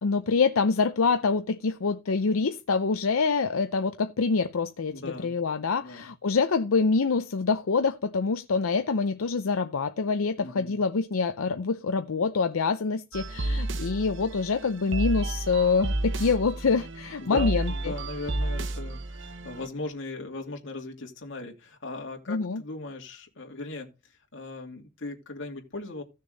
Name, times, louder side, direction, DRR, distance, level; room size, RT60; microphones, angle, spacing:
voice 1, 0.0-17.9 22.3-22.6, left 4 dB, 80° left, 0.6 m, -26 dB
voice 2, 4.9-5.3 5.8-6.1 10.4-10.8 17.2-26.0, left 2 dB, 60° left, 2.7 m, -38 dB
sound 1, 13.1-19.7, right 2 dB, 60° right, 0.8 m, -31 dB
15.5 x 6.6 x 4.0 m
head